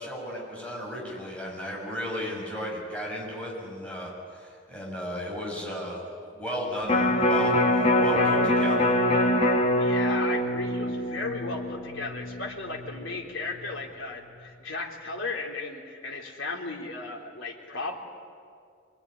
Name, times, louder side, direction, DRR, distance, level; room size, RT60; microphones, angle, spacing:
voice 1, 0.0-9.0, equal, 5° left, -4 dB, 7.3 m, -34 dB
Electric guitar, 6.9-13.1 13.5-13.6, left 1 dB, 35° left, 2.7 m, -24 dB
voice 2, 9.8-17.9, left 3 dB, 75° left, 0 dB, 3.7 m, -35 dB
26.5 x 20.0 x 10.0 m, 2.3 s
head